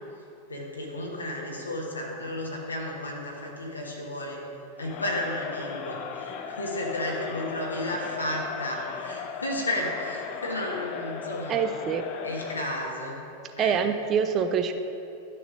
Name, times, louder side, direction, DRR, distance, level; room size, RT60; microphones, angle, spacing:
voice 1, 0.5-4.4 4.8-11.7 12.2-13.2 13.6-13.8, left 1 dB, 75° left, -1 dB, 1.1 m, -33 dB
Crowd, 4.8-12.8, left 7 dB, 40° left, 0.5 m, -37 dB
voice 2, 11.5-12.0 13.6-14.7, right 7 dB, 30° right, 7 dB, 0.4 m, -25 dB
12.0 x 6.6 x 2.4 m, 2.7 s
figure-of-eight pair, 90°, 0 cm